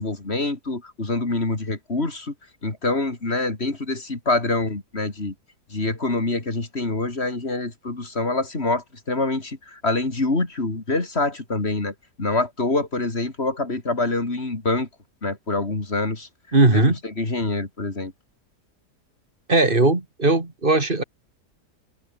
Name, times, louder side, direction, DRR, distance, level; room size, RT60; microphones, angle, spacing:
voice 1, 0.0-2.3 2.6-5.3 5.7-14.9 15.2-16.3 16.7-18.1, left 2 dB, 40° left, 3.7 m, -25 dB
voice 2, 16.5-17.0 19.5-21.0, right 2 dB, 30° right, 3.0 m, -18 dB
omnidirectional pair, 1.7 m